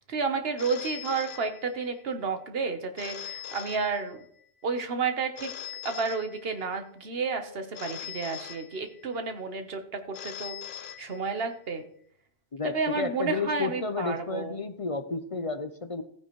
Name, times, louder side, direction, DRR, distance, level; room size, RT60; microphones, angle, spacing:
voice 1, 0.0-4.2 4.6-5.5 5.8-10.5 11.0-11.8 12.6-14.6, right 4 dB, 70° right, 7 dB, 1.4 m, -31 dB
Telephone, 0.6-2.1 3.0-4.5 5.4-6.9 7.7-9.2 10.1-11.6, left 10 dB, 80° left, 0.9 m, -42 dB
voice 2, 12.5-16.0, left 4 dB, 40° left, 9 dB, 0.6 m, -32 dB
15.0 x 9.4 x 3.1 m, 0.64 s
omnidirectional pair, 1.0 m